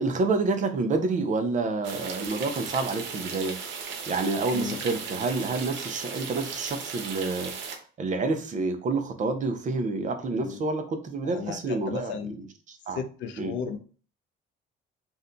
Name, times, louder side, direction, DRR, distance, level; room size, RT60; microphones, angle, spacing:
voice 1, 0.0-3.6 4.1-7.5 8.0-13.0 13.4-13.5, right 3 dB, 40° right, 6 dB, 0.6 m, -28 dB
sound 1, 1.8-7.8, right 5 dB, 80° right, 0.8 m, -36 dB
voice 2, 4.5-4.9 10.4-10.6 11.2-12.4 12.9-13.8, left 7 dB, 70° left, 8 dB, 0.5 m, -35 dB
2.6 x 2.2 x 3.8 m, 0.39 s
cardioid pair, 105°, 20 cm